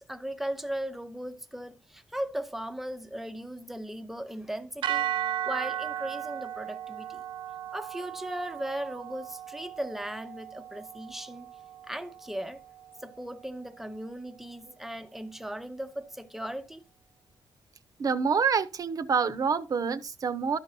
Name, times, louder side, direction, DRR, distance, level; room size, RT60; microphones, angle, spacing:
voice 1, 0.0-5.1 5.4-7.2 7.7-11.5 11.9-12.6 13.0-16.8, right 1 dB, 5° right, 0.6 m, -37 dB
sound 1, 4.8-13.1, right 11 dB, 80° right, 0.4 m, -36 dB
voice 2, 18.0-20.6, right 6 dB, 45° right, 0.7 m, -27 dB
12.5 x 5.3 x 2.7 m
cardioid pair, 115°, 8 cm